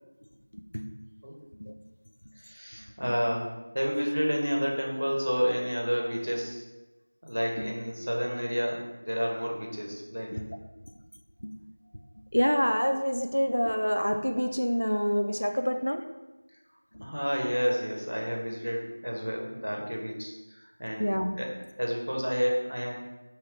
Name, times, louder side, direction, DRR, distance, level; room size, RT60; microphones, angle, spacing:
voice 1, 0.5-1.0 1.5-1.7 3.0-3.2 7.6-7.7 10.3-10.6 11.4-11.6 12.3-16.0 16.9-17.1 21.0-21.4, equal, 90° left, 6 dB, 0.3 m, -27 dB
voice 2, 2.4-3.5 3.7-6.6 7.2-10.3 17.0-21.1 21.4-21.5 21.8-22.9, equal, 80° right, -1 dB, 0.8 m, -30 dB
2.7 x 2.4 x 3.3 m, 1.1 s
figure-of-eight pair, 180°, 0 cm